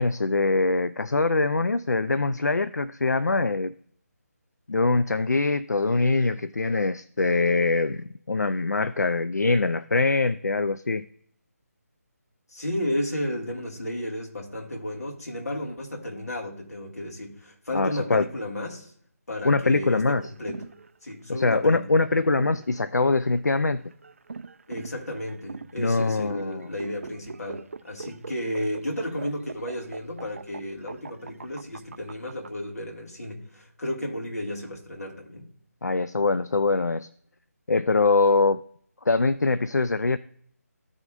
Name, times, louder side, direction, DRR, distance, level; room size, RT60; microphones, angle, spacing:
voice 1, 0.0-3.7 4.7-11.1 17.7-18.2 19.4-20.2 21.3-23.8 25.8-26.7 35.8-37.1 37.7-38.6 39.1-40.2, left 3 dB, 85° left, 0.4 m, -23 dB
voice 2, 12.5-18.9 19.3-20.7 21.0-21.9 24.7-35.5, left 1 dB, 65° left, 2.3 m, -33 dB
sound 1, 20.0-32.5, right 4 dB, 55° right, 0.4 m, -42 dB
14.5 x 4.9 x 2.6 m
figure-of-eight pair, 155°, 9 cm